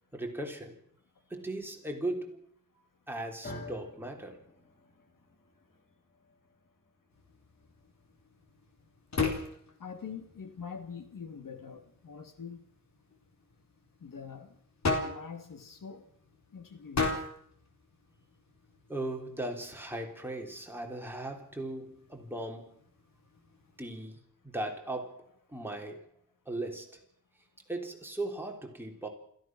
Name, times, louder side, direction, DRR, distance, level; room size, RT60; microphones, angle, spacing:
voice 1, 0.1-0.8 1.3-2.4 3.1-4.4 18.9-22.7 23.8-24.2 24.4-26.1 26.5-27.0 27.7-29.1, right 1 dB, 5° right, 1 dB, 3.5 m, -38 dB
sound 1, 3.4-11.7, left 1 dB, 30° left, 2.6 m, -52 dB
sound 2, 7.1-24.0, left 3 dB, 55° left, 3.9 m, -40 dB
voice 2, 9.8-12.6 14.0-14.6 15.0-16.1 16.5-17.2, left 6 dB, 80° left, 7 dB, 2.6 m, -44 dB
29.0 x 15.0 x 6.2 m, 0.65 s
wide cardioid pair, 165°, 32 cm